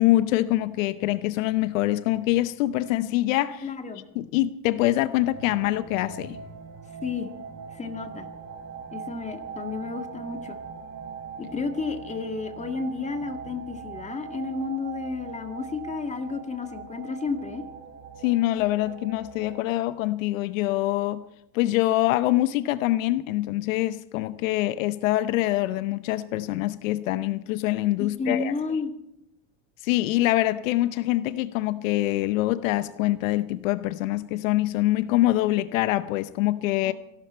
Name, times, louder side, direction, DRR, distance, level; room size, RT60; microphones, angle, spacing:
voice 1, 0.0-3.6 4.2-6.4 18.2-21.2 21.5-28.5 29.8-36.9, left 16 dB, 85° left, 0.8 m, -24 dB
voice 2, 3.6-4.0 7.0-7.3 7.7-8.3 8.9-10.6 11.4-17.6 28.0-28.9 36.8-36.9, left 4 dB, 20° left, 1.9 m, -32 dB
sound 1, 5.2-19.6, right 6 dB, 35° right, 2.9 m, -41 dB
27.0 x 12.5 x 4.4 m
supercardioid pair, 120°, 38 cm